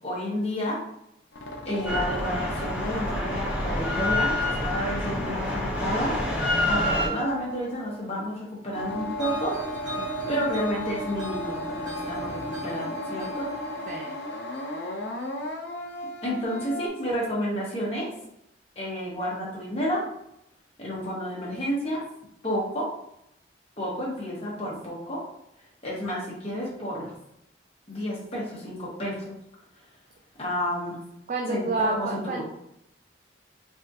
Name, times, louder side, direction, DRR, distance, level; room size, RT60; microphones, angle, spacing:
voice 1, 0.0-0.8 1.6-6.2 6.6-9.6 10.3-13.5 16.2-18.1 18.7-20.0 20.8-22.0 22.4-22.9 23.8-25.2 25.8-27.1 27.9-29.3 30.4-31.0 31.5-32.4, equal, 35° left, -5 dB, 1.3 m, -30 dB
sound 1, 1.3-8.2 8.7-16.9, left 1 dB, 70° left, 0.6 m, -36 dB
Drill, 1.8-7.1, left 1 dB, 10° right, 0.7 m, -27 dB
sound 2, 9.2-16.3, right 3 dB, 85° right, 1.2 m, -40 dB
voice 2, 10.0-10.4 13.9-14.2 31.3-32.4, right 3 dB, 45° right, 1 dB, 0.3 m, -31 dB
3.6 x 3.2 x 2.7 m, 0.78 s
head